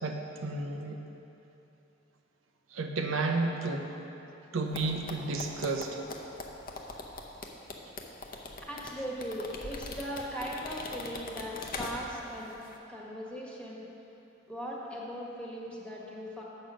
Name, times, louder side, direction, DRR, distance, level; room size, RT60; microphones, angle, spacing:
voice 1, 0.0-1.0 2.7-3.9 4.5-6.0, right 3 dB, 75° right, 3 dB, 0.7 m, -32 dB
sound 1, 4.7-12.3 12.6-12.8, left 3 dB, 45° left, 0.8 m, -42 dB
voice 2, 8.6-12.5 12.9-13.9 14.5-16.4, equal, 5° left, -5 dB, 1.5 m, -39 dB
8.2 x 6.5 x 6.2 m, 2.9 s
head